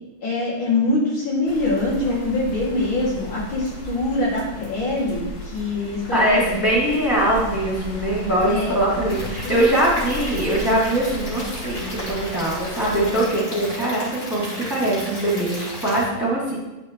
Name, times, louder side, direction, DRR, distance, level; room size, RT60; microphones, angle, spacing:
voice 1, 0.2-6.6 8.4-8.8 9.4-9.5, left 2 dB, 85° left, -5 dB, 3.2 m, -24 dB
sound 1, 1.5-13.1, equal, 65° left, 2.2 m, -35 dB
voice 2, 6.1-16.6, right 1 dB, 10° right, -7 dB, 2.6 m, -22 dB
Stream / Liquid, 9.1-16.0, left 1 dB, 40° left, 2.7 m, -34 dB
9.4 x 8.4 x 3.1 m, 1.1 s
omnidirectional pair, 2.1 m